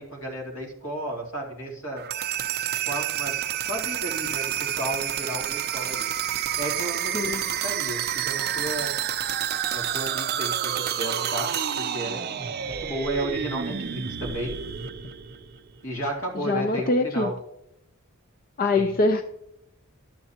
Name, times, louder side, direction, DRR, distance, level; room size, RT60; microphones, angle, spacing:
voice 1, 0.0-2.0 2.9-3.4 3.6-6.1 6.6-8.9 9.7-14.6 15.8-17.3 18.7-18.9, right 1 dB, 70° left, 0 dB, 2.7 m, -33 dB
sound 1, 2.0-15.8, right 9 dB, 45° right, 0.5 m, -29 dB
voice 2, 16.4-17.3 18.6-19.2, left 2 dB, 45° left, 7 dB, 0.5 m, -23 dB
12.0 x 7.6 x 2.9 m, 0.85 s
head